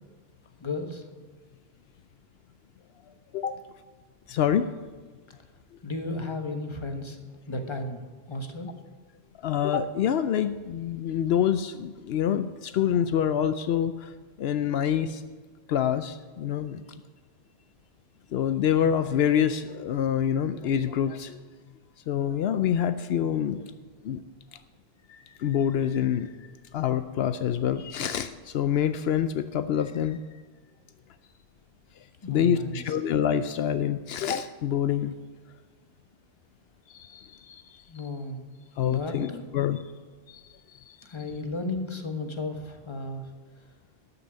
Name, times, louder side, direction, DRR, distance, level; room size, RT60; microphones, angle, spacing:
voice 1, 0.6-1.0 5.8-7.2 7.5-8.0 8.3-8.7 32.2-32.8 37.9-38.4 38.7-39.4 41.0-43.2, left 2 dB, 30° left, 5 dB, 1.3 m, -34 dB
voice 2, 4.3-4.7 9.4-14.1 14.4-15.2 15.7-16.8 18.3-21.4 22.1-23.7 24.0-24.2 25.1-26.3 26.7-30.2 32.3-35.1 36.9-38.0 38.8-39.8 40.3-40.4 40.9-41.0, left 9 dB, 80° left, 11 dB, 0.8 m, -26 dB
13.0 x 6.9 x 7.9 m, 1.4 s
omnidirectional pair, 1.0 m